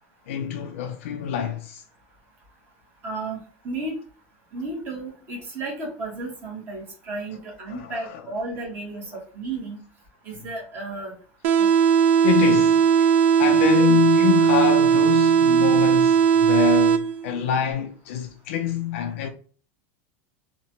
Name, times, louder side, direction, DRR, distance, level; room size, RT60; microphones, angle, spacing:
voice 1, 0.3-1.8 7.7-8.2 12.2-13.1 13.4-19.3, left 8 dB, 75° left, 0.5 m, -25 dB
voice 2, 3.0-3.4 3.6-4.0 4.5-9.8 10.2-11.1 11.6-11.7, right 2 dB, 25° right, 1.0 m, -33 dB
sound 1, 11.4-17.4, right 7 dB, 80° right, 0.3 m, -18 dB
2.9 x 2.1 x 2.8 m
supercardioid pair, 165°, 7 cm